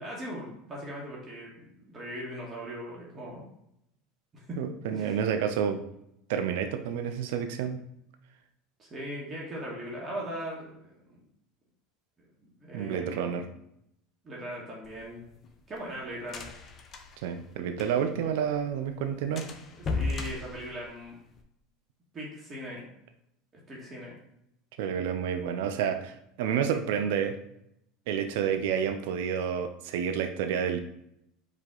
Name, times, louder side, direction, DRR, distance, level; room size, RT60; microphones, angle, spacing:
voice 1, 0.0-3.4 4.5-4.6 4.9-5.2 8.8-11.2 12.2-13.4 14.2-15.2 15.7-16.5 19.8-21.2 22.1-22.9 23.7-24.2, equal, 30° right, -4 dB, 1.5 m, -39 dB
voice 2, 4.6-5.8 6.3-7.8 12.7-13.5 17.2-19.5 24.8-27.3 28.1-30.8, right 8 dB, 75° right, 7 dB, 0.4 m, -29 dB
sound 1, 14.8-18.2 18.5-18.6 18.9-19.0 19.4-21.4, left 3 dB, 35° left, 0.7 m, -36 dB
4.9 x 2.7 x 3.7 m, 0.77 s
hypercardioid pair, 95°, 0 cm